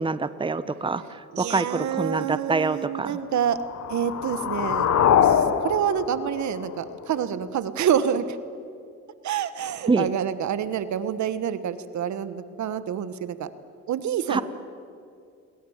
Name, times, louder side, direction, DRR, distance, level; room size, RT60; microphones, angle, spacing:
voice 1, 0.0-3.2 9.9-10.1 14.3-14.4, right 4 dB, 15° right, 13 dB, 1.0 m, -26 dB
voice 2, 1.3-3.6 3.9-4.9 5.2-8.4 9.2-13.5 13.9-14.4, right 9 dB, 70° right, 13 dB, 1.4 m, -27 dB
sound 1, 3.4-7.4, left 8 dB, 60° left, 1.4 m, -24 dB
29.5 x 22.0 x 7.4 m, 2.4 s
cardioid pair, 90°, 30 cm